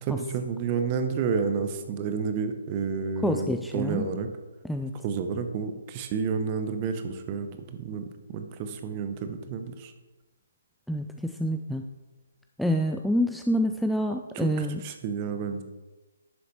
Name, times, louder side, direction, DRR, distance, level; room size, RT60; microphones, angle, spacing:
voice 1, 0.0-4.3 4.9-9.9 14.3-15.6, right 5 dB, 30° right, 8 dB, 0.8 m, -30 dB
voice 2, 3.2-4.1 4.6-4.9 10.9-11.9 12.6-14.8, equal, ahead, 4 dB, 0.3 m, -27 dB
11.0 x 6.8 x 3.1 m, 1.2 s
figure-of-eight pair, 135°, 0 cm